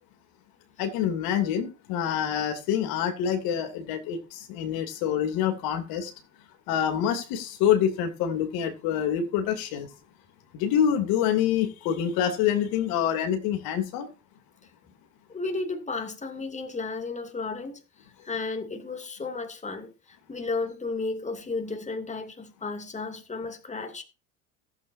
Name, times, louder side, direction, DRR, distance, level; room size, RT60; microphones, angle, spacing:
voice 1, 0.8-6.1 6.7-9.9 10.5-14.1, left 9 dB, 60° left, 2.8 m, -26 dB
voice 2, 15.3-24.0, left 3 dB, 20° left, 2.7 m, -33 dB
15.5 x 8.7 x 2.7 m
hypercardioid pair, 80°, 39 cm